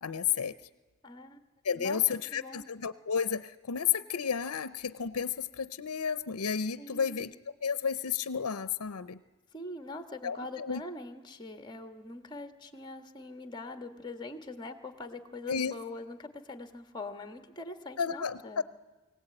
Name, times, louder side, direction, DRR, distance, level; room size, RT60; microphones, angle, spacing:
voice 1, 0.0-0.5 1.6-7.3 7.6-9.2 10.2-10.8 15.5-15.7 18.0-18.6, left 7 dB, 85° left, 14 dB, 0.7 m, -32 dB
voice 2, 1.0-1.4 1.7-2.0 2.3-2.7 6.8-7.3 9.5-18.6, left 2 dB, 20° left, 7 dB, 1.6 m, -43 dB
23.0 x 17.0 x 9.0 m, 1.2 s
head